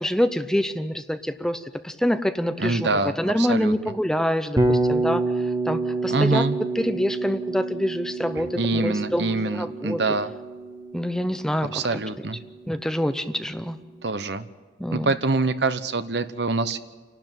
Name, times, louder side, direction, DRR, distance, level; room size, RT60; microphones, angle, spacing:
voice 1, 0.0-2.9 3.2-5.2 5.6-6.4 6.8-10.0 10.9-11.8 12.7-13.8 14.8-15.1, equal, 5° left, 9 dB, 0.7 m, -26 dB
voice 2, 2.6-3.7 6.1-6.6 8.5-10.3 11.7-12.4 14.0-14.5 14.9-16.8, right 3 dB, 65° right, 12 dB, 1.0 m, -25 dB
Bass guitar, 4.6-12.6, right 2 dB, 20° right, 1.5 m, -28 dB
29.0 x 12.0 x 9.1 m, 1.4 s
head